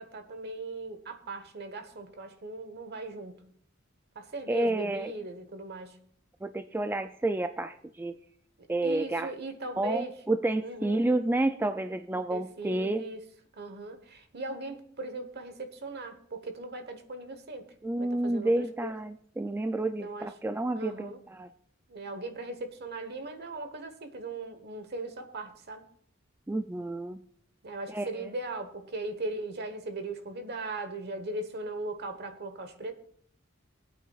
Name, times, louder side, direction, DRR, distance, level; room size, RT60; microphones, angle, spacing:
voice 1, 0.0-3.4 4.1-6.0 8.8-10.2 10.6-11.0 12.3-13.2 13.5-17.7 18.0-19.0 20.0-20.3 20.7-21.2 21.9-25.8 27.6-32.9, right 2 dB, 55° right, 8 dB, 1.2 m, -38 dB
voice 2, 4.5-5.1 6.4-8.2 8.7-9.3 9.8-13.0 17.8-21.5 26.5-27.2 27.9-28.1, right 2 dB, 10° right, 8 dB, 0.3 m, -30 dB
20.5 x 8.9 x 2.4 m, 0.63 s
head